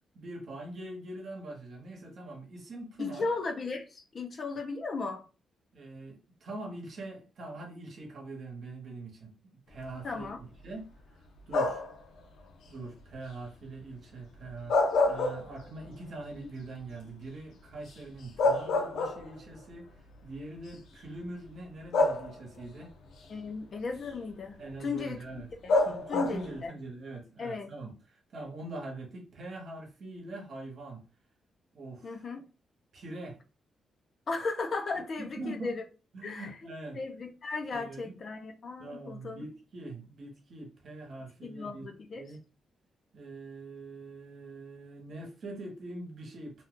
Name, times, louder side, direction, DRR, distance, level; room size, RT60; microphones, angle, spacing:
voice 1, 0.1-3.3 5.7-9.3 9.7-10.3 10.6-11.8 12.7-14.8 15.1-19.9 20.2-22.9 24.6-25.5 25.8-31.0 31.7-32.2 32.9-33.4 35.2-35.7 36.1-37.0 37.7-38.2 38.8-41.9 42.1-42.4 43.1-46.6, right 2 dB, 50° right, 1.0 m, -43 dB
voice 2, 3.0-5.2 10.0-10.4 23.3-25.8 26.1-26.7 27.4-27.7 32.0-32.4 34.3-35.8 36.2-36.5 36.9-39.4 41.4-42.2, left 3 dB, 40° left, 0.5 m, -36 dB
sound 1, 11.5-12.0 14.5-15.9 16.3-16.4 17.9-18.0 18.4-19.5 20.5-20.7 21.9-22.6 25.7-26.6, left 2 dB, 80° left, 0.6 m, -27 dB
2.8 x 2.2 x 3.6 m
cardioid pair, 150°, 0 cm